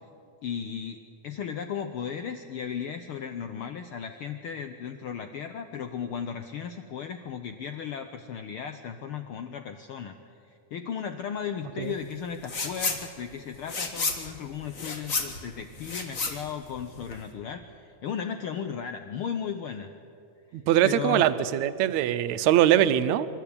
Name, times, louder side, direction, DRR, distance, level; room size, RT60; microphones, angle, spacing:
voice 1, 0.4-10.2 10.5-19.9 20.8-21.3, left 7 dB, 85° left, 8 dB, 1.2 m, -35 dB
sound 1, 12.4-13.0 13.3-17.3, left 4 dB, 35° left, 1.5 m, -31 dB
voice 2, 20.5-23.3, right 11 dB, 75° right, 13 dB, 2.0 m, -22 dB
27.0 x 12.0 x 8.7 m, 2.6 s
omnidirectional pair, 3.4 m